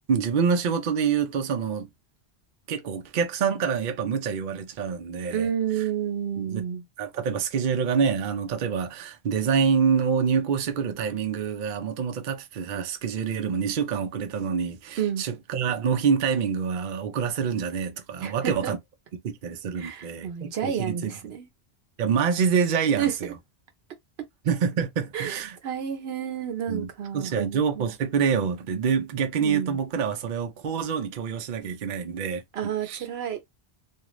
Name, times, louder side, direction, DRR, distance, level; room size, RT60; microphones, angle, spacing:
voice 1, 0.1-1.9 2.7-5.4 6.4-6.6 7.0-18.8 19.2-21.1 22.0-23.3 24.4-25.6 26.7-26.9 27.1-32.4 32.8-33.0, right 6 dB, 55° right, 0.6 m, -26 dB
voice 2, 5.3-6.8 15.0-15.2 18.2-18.7 19.8-21.5 23.0-23.1 25.1-27.9 29.4-29.8 32.5-33.4, right 9 dB, 80° right, 0.9 m, -30 dB
2.4 x 2.4 x 3.0 m
omnidirectional pair, 1.1 m